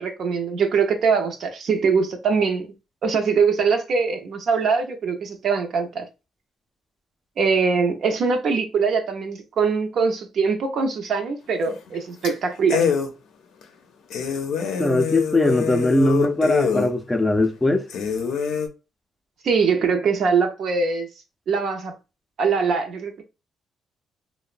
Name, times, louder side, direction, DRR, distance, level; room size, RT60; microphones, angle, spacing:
voice 1, 0.0-2.7 3.0-6.1 7.4-12.8 19.4-21.1 21.5-21.9 22.4-23.2, right 5 dB, 60° right, 0.5 m, -22 dB
sound 1, 11.6-12.0 12.2-12.3 12.7-13.1 13.6-13.7 14.1-16.9 17.4-17.5 17.9-18.7, left 6 dB, 85° left, 0.5 m, -25 dB
voice 2, 14.8-17.8, left 2 dB, 10° left, 0.3 m, -20 dB
2.9 x 2.1 x 2.4 m
cardioid pair, 125°, 0 cm